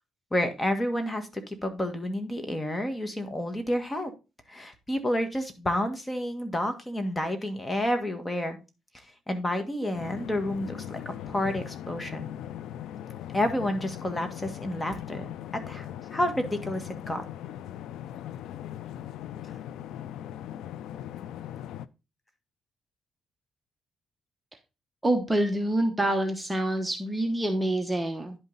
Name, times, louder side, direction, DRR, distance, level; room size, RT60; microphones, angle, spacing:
voice 1, 0.3-4.1 4.5-8.6 8.9-12.3 13.3-15.3 15.7-17.2, left 1 dB, 15° left, 7 dB, 1.8 m, -30 dB
sound 1, 9.9-21.9, left 11 dB, 85° left, 0.4 m, -39 dB
voice 2, 25.0-28.4, right 1 dB, 15° right, 5 dB, 1.1 m, -26 dB
10.5 x 5.5 x 4.0 m, 0.28 s
cardioid pair, 90°, 0 cm